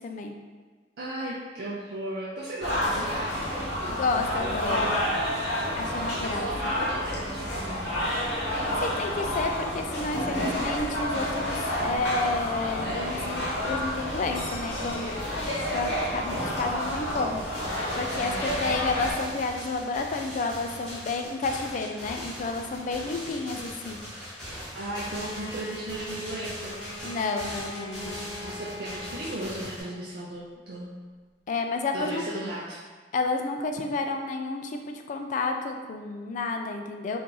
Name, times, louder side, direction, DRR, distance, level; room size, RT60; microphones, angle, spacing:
voice 1, 0.0-0.3 4.0-5.0 5.8-6.5 8.8-15.1 15.7-17.4 18.0-24.0 27.0-28.2 31.5-32.2 33.1-37.2, left 3 dB, 45° left, 4 dB, 0.3 m, -30 dB
voice 2, 1.0-3.9 5.9-7.9 18.2-18.8 24.7-26.8 28.4-30.9 31.9-32.8, right 1 dB, 60° right, -6 dB, 0.5 m, -36 dB
sound 1, 2.6-19.1, equal, 85° left, 0.9 m, -29 dB
sound 2, 17.5-29.8, equal, 5° left, 1.0 m, -40 dB
Bowed string instrument, 24.8-30.0, left 1 dB, 20° left, 1.3 m, -41 dB
2.9 x 2.5 x 3.7 m, 1.4 s
head